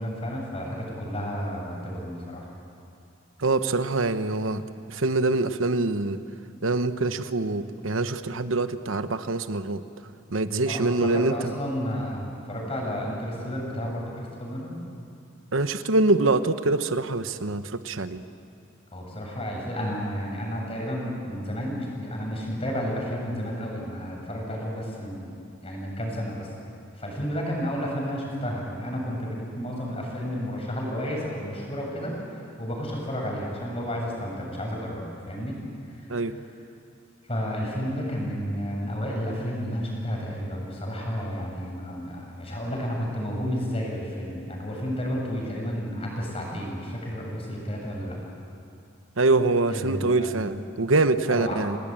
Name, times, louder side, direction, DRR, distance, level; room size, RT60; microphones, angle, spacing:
voice 1, 0.0-2.5 10.7-14.8 18.9-26.5 26.9-35.6 35.9-36.3 37.2-48.1 49.7-50.3 51.3-51.7, equal, 30° left, -1 dB, 7.4 m, -31 dB
voice 2, 3.4-4.6 4.9-6.2 6.6-9.8 10.3-11.5 15.5-18.2 36.1-36.3 49.2-51.8, right 3 dB, 80° right, 11 dB, 1.1 m, -24 dB
29.0 x 19.5 x 9.0 m, 2.5 s
head